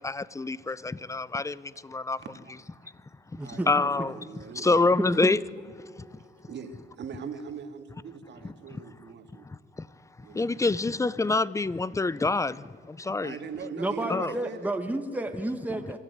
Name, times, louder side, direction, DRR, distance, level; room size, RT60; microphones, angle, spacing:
voice 1, 0.0-2.2 3.7-4.1 4.6-5.4 9.8-9.9 10.3-13.4 14.1-14.3 15.7-15.8, left 3 dB, 15° left, 19 dB, 0.6 m, -26 dB
voice 2, 2.2-2.5 2.8-2.9 3.4-5.0 6.2-9.5 10.2-10.8 13.2-14.7, right 6 dB, 60° right, 6 dB, 2.2 m, -41 dB
voice 3, 3.3-3.7 5.0-5.3 13.8-16.0, right 1 dB, 10° right, 5 dB, 1.5 m, -31 dB
25.0 x 13.5 x 9.5 m, 2.1 s
cardioid pair, 90°, 20 cm